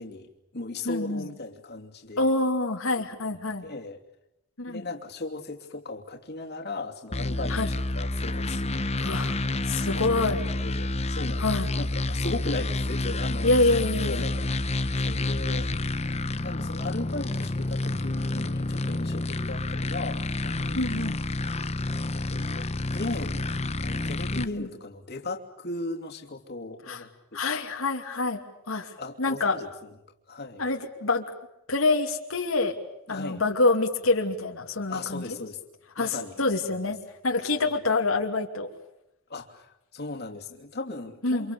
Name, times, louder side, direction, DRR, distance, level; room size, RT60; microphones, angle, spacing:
voice 1, 0.0-2.3 2.9-3.3 3.6-4.0 4.7-8.9 10.3-14.6 15.0-15.7 16.4-20.9 21.9-23.5 23.8-27.4 29.0-29.9 30.3-30.7 33.1-33.4 34.9-35.6 36.0-36.4 39.3-41.5, left 2 dB, 50° left, 1 dB, 2.9 m, -37 dB
voice 2, 0.8-1.3 2.2-3.6 4.6-4.8 7.5-7.7 9.0-10.5 11.4-11.7 13.4-14.3 20.7-21.2 24.4-24.7 26.9-27.0 27.3-28.4 28.7-29.6 30.6-31.2 31.7-32.7 33.1-35.2 36.0-37.0 37.2-38.7 41.2-41.5, left 2 dB, 90° left, 2 dB, 2.8 m, -26 dB
sound 1, 7.1-24.4, left 2 dB, 30° left, 1.0 m, -29 dB
29.0 x 26.5 x 7.0 m, 0.87 s
head